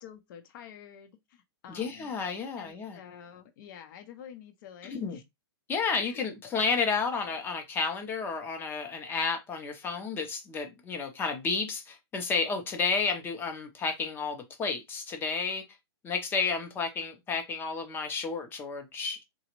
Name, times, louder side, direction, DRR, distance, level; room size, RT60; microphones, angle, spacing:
voice 1, 0.0-2.1 2.6-5.2 6.0-6.2 7.2-7.4, left 9 dB, 50° left, 0.8 m, -48 dB
voice 2, 1.7-3.0 4.9-5.2 5.7-15.6 16.0-19.2, left 5 dB, 15° left, 0.7 m, -31 dB
4.0 x 2.3 x 3.0 m
hypercardioid pair, 155°, 14 cm